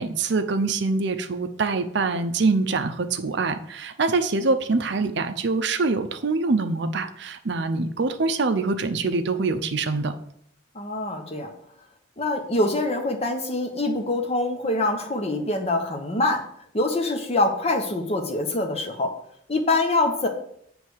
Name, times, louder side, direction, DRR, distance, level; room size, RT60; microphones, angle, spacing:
voice 1, 0.0-10.1, right 3 dB, 60° right, 9 dB, 0.6 m, -24 dB
voice 2, 10.7-11.5 12.2-16.4 16.7-19.1 19.5-20.3, left 2 dB, 30° left, 3 dB, 1.0 m, -24 dB
7.4 x 3.4 x 6.4 m, 0.69 s
head